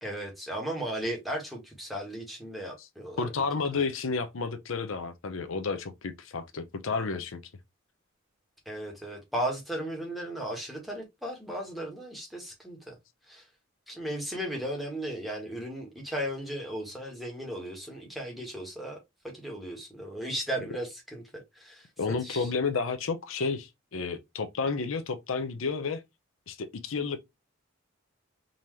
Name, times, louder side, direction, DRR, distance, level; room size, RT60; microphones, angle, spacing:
voice 1, 0.0-3.3 3.7-3.8 8.6-12.9 13.3-13.4 13.9-19.0 19.2-21.2 21.5-21.9 22.2-22.5, right 1 dB, ahead, 1.3 m, -36 dB
voice 2, 3.2-7.4 22.0-26.0 26.5-27.2, left 4 dB, 85° left, 0.6 m, -31 dB
3.8 x 2.9 x 3.1 m
head